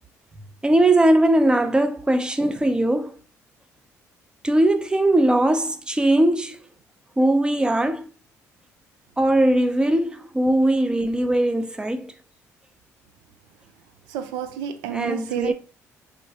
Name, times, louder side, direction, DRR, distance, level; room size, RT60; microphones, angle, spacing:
voice 1, 0.6-3.2 4.4-6.6 7.2-8.1 9.2-12.1 14.9-15.5, right 1 dB, 10° right, 0.5 m, -20 dB
voice 2, 14.1-15.5, right 9 dB, 75° right, 0.4 m, -30 dB
3.0 x 2.0 x 2.7 m
hypercardioid pair, 55°, 8 cm